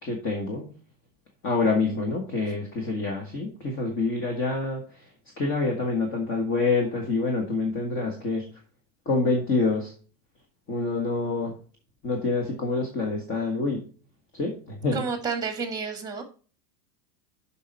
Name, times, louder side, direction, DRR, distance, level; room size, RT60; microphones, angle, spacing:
voice 1, 0.0-0.7 1.4-5.1 5.4-8.5 9.0-9.9 10.7-11.6 12.0-13.8 14.3-15.0, left 3 dB, 25° left, 2 dB, 1.6 m, -27 dB
voice 2, 14.9-16.2, right 5 dB, 10° right, 6 dB, 1.6 m, -30 dB
7.1 x 5.9 x 5.4 m, 0.39 s
supercardioid pair, 160°, 46 cm